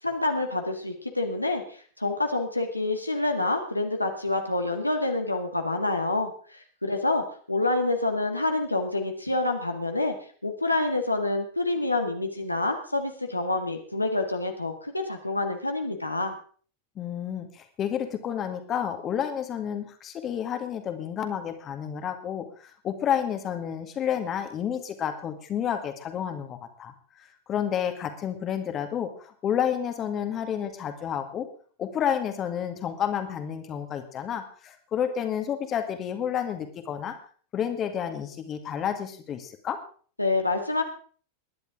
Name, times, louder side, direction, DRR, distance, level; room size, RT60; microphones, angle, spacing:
voice 1, 0.0-10.1 10.4-16.3 40.2-40.8, left 2 dB, 85° left, 4 dB, 1.8 m, -27 dB
voice 2, 17.0-26.9 27.5-31.5 31.8-37.1 37.5-39.8, left 9 dB, 30° left, 7 dB, 2.0 m, -30 dB
21.0 x 10.5 x 3.7 m, 0.44 s
figure-of-eight pair, 90°, 0 cm